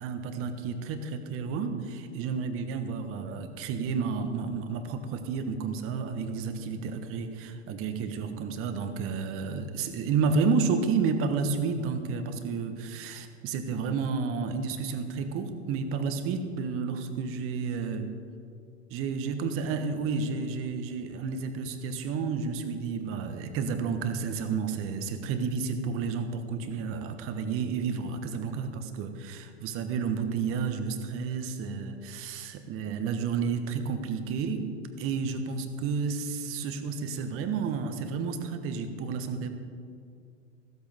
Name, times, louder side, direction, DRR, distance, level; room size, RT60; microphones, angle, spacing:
voice 1, 0.0-18.1 18.9-34.7 35.0-39.5, right 5 dB, 40° right, 8 dB, 1.4 m, -31 dB
15.0 x 14.0 x 3.6 m, 2.4 s
figure-of-eight pair, 95°, 35 cm